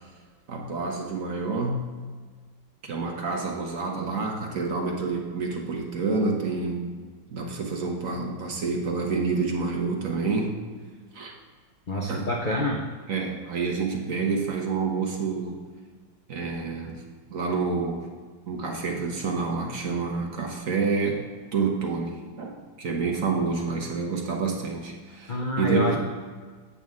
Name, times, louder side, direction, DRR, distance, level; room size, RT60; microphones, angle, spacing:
voice 1, 0.5-1.9 2.8-7.0 7.3-10.6 11.1-11.3 12.1-12.2 13.1-15.6 16.3-17.0 17.3-18.0 18.5-22.5 22.8-26.0, right 4 dB, 50° right, 1 dB, 1.2 m, -28 dB
voice 2, 11.9-12.9 25.3-26.0, left 1 dB, 75° left, -1 dB, 0.4 m, -27 dB
8.5 x 7.7 x 3.6 m, 1.5 s
omnidirectional pair, 2.1 m